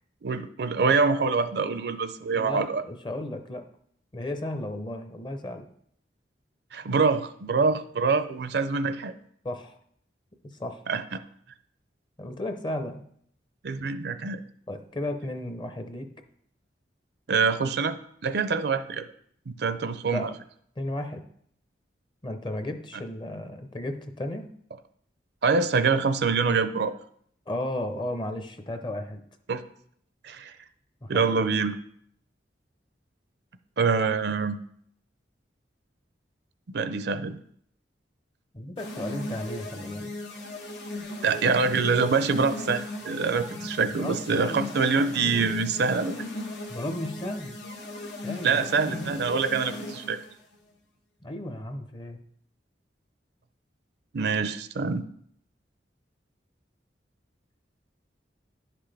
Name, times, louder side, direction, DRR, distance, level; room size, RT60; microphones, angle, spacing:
voice 1, 0.2-2.8 6.7-9.1 10.9-11.2 13.6-14.4 17.3-18.0 18.2-19.0 19.5-20.3 25.4-26.9 29.5-29.6 30.2-30.5 31.1-31.8 33.8-34.6 36.7-37.4 41.2-46.1 48.4-50.2 54.1-55.0, right 4 dB, 65° right, 11 dB, 0.5 m, -25 dB
voice 2, 2.3-3.6 4.1-5.7 9.4-9.8 10.6-10.8 12.2-13.0 14.7-16.1 20.1-20.3 20.8-21.2 22.2-24.5 27.5-29.2 31.0-31.2 38.5-40.1 43.9-44.7 46.7-47.6 48.2-48.7 51.2-52.2, left 1 dB, 25° left, 7 dB, 0.7 m, -34 dB
sound 1, 38.8-50.3, left 2 dB, 85° left, 1.2 m, -37 dB
10.5 x 5.9 x 3.3 m, 0.66 s
head